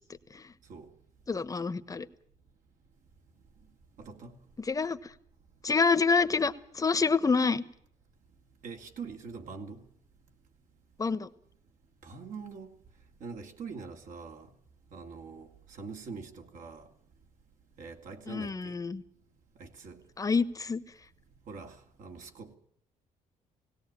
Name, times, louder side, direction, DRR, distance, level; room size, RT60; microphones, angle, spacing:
voice 1, 1.3-2.1 4.6-5.1 5.6-7.6 11.0-11.3 18.3-19.0 20.2-20.8, left 4 dB, 25° left, 1.1 m, -27 dB
voice 2, 4.0-4.4 8.6-9.8 12.0-12.8 13.2-14.5 14.9-16.9 17.8-18.7 19.6-20.0 21.5-22.6, right 5 dB, 65° right, 2.7 m, -44 dB
19.0 x 17.5 x 8.9 m
cardioid pair, 105°, 14 cm